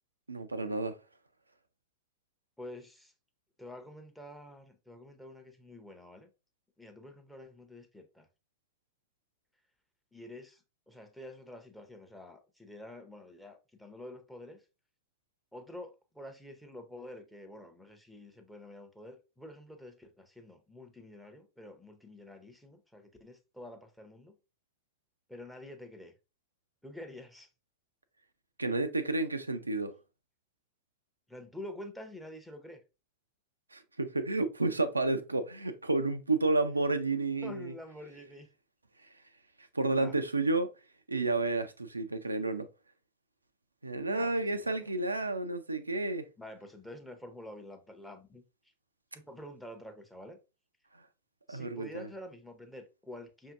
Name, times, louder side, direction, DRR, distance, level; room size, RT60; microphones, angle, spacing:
voice 1, 0.3-1.0 28.6-29.9 33.7-37.7 39.7-40.7 41.1-42.7 43.8-46.2 51.5-52.1, right 2 dB, 80° right, 0.3 m, -31 dB
voice 2, 2.6-3.1 3.6-6.3 6.8-8.3 10.1-14.6 15.5-24.4 25.3-26.1 26.8-27.5 31.3-32.8 37.4-38.5 39.9-40.2 44.0-44.9 46.4-48.4 49.1-50.4 51.5-53.5, left 1 dB, ahead, 0.7 m, -48 dB
5.5 x 2.6 x 2.4 m
figure-of-eight pair, 90°, 0 cm